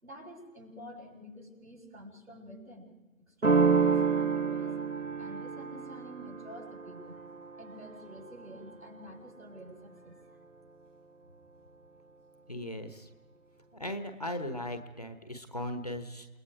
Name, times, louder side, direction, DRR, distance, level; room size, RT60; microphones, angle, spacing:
voice 1, 0.0-2.9 3.4-4.8 5.2-7.2 7.6-10.2, equal, 80° right, 1 dB, 7.4 m, -49 dB
sound 1, 3.4-9.0, right 5 dB, 60° right, 2.1 m, -29 dB
voice 2, 12.5-13.1 13.7-16.3, left 1 dB, 30° left, 8 dB, 1.1 m, -38 dB
28.5 x 20.0 x 4.9 m, 1.2 s
figure-of-eight pair, 165°, 41 cm